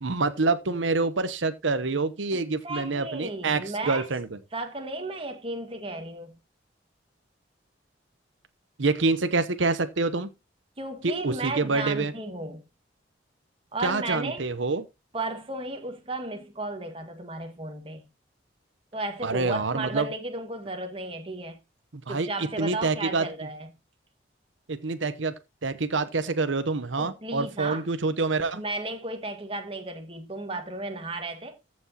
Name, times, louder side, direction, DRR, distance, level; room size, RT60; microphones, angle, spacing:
voice 1, 0.0-4.3 8.8-10.3 11.0-12.1 13.8-14.8 19.2-20.1 22.1-23.3 24.7-25.3 25.6-28.6, right 3 dB, 85° right, 0.9 m, -26 dB
voice 2, 2.6-4.1 4.5-6.4 10.8-12.6 13.7-14.5 15.1-18.0 18.9-21.6 22.1-23.7 27.0-27.8 28.5-31.6, right 2 dB, 30° right, 1.8 m, -34 dB
14.5 x 6.2 x 2.9 m
head